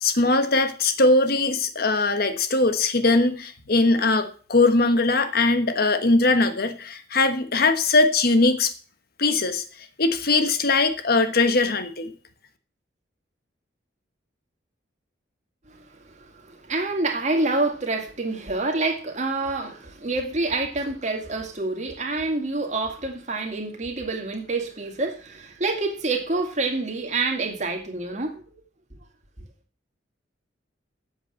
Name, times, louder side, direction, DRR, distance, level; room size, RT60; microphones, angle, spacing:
voice 1, 0.0-8.7 9.2-9.6 10.0-12.1, left 3 dB, 55° left, 1.3 m, -21 dB
voice 2, 16.4-28.4, right 3 dB, 40° right, 2.2 m, -27 dB
7.9 x 7.9 x 7.5 m
head